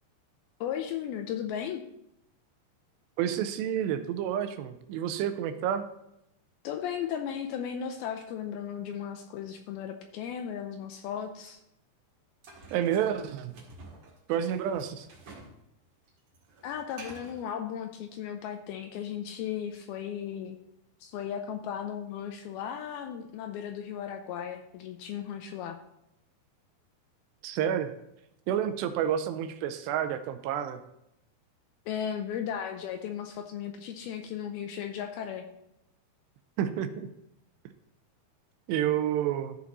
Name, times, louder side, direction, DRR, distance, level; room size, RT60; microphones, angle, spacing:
voice 1, 0.6-1.8 6.6-11.6 16.6-20.6 21.0-25.8 31.9-35.5, left 9 dB, 80° left, 5 dB, 2.3 m, -36 dB
voice 2, 3.2-5.8 12.7-13.5 14.3-15.1 27.4-27.9 28.5-30.8 36.6-37.1 38.7-39.6, right 9 dB, 85° right, 9 dB, 2.8 m, -29 dB
sound 1, 12.4-15.6 15.8-17.4, right 3 dB, 45° right, 2.5 m, -50 dB
13.5 x 5.1 x 4.0 m, 0.80 s
omnidirectional pair, 4.9 m